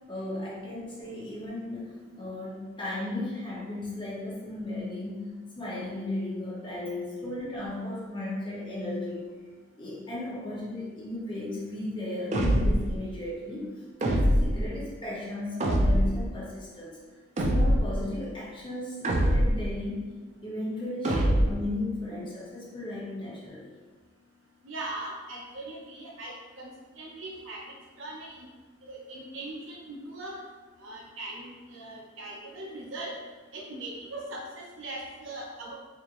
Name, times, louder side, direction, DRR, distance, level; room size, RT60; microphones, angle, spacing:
voice 1, 0.1-9.2 9.8-17.0 17.5-20.1 20.4-23.7, left 1 dB, 25° left, -6 dB, 1.0 m, -35 dB
sound 1, 12.3-12.9 14.0-14.7 15.6-16.2 17.4-18.0 19.0-19.7 21.0-21.7, equal, 35° right, 0.4 m, -23 dB
voice 2, 24.6-26.7 27.0-27.6 28.0-28.3 28.8-30.3 30.8-33.1 33.5-35.7, right 2 dB, 80° right, -3 dB, 0.7 m, -40 dB
4.3 x 2.8 x 2.6 m, 1.3 s
head